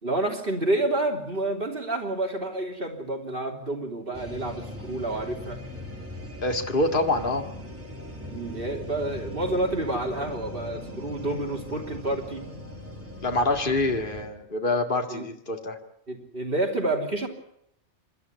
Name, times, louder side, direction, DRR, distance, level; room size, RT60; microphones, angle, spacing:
voice 1, 0.0-5.6 8.3-12.5 15.1-15.2 16.1-17.3, right 2 dB, 50° right, 2 dB, 3.5 m, -29 dB
sound 1, 4.1-14.3, left 1 dB, 10° right, 3.8 m, -40 dB
voice 2, 6.4-7.5 13.2-15.8, left 2 dB, 45° left, 4 dB, 2.4 m, -26 dB
28.0 x 13.0 x 9.7 m, 0.74 s
omnidirectional pair, 1.2 m